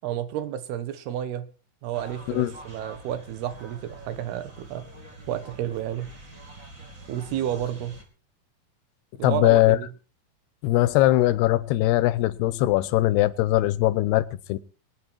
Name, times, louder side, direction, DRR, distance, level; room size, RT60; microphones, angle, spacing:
voice 1, 0.0-1.5 1.8-4.9 5.3-6.1 7.1-8.0 9.2-9.9, right 11 dB, 80° right, 3.2 m, -31 dB
sound 1, 1.9-8.0, right 1 dB, 25° right, 2.6 m, -45 dB
voice 2, 9.2-9.8 10.6-14.6, left 16 dB, 85° left, 2.9 m, -21 dB
23.0 x 9.6 x 4.6 m
omnidirectional pair, 4.6 m